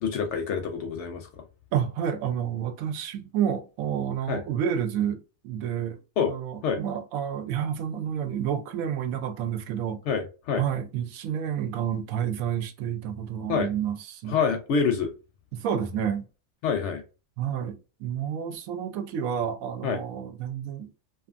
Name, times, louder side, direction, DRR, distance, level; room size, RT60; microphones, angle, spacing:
voice 1, 0.0-1.4 4.3-4.4 6.2-6.3 6.6-6.8 10.1-10.6 13.5-13.7 14.3-15.1 16.6-17.0 19.8-20.0, left 6 dB, 65° left, 0.8 m, -26 dB
voice 2, 1.7-6.0 6.3-10.0 10.5-14.4 15.5-16.3 17.4-20.9, right 9 dB, 80° right, 1.0 m, -30 dB
2.6 x 2.4 x 2.5 m
omnidirectional pair, 1.4 m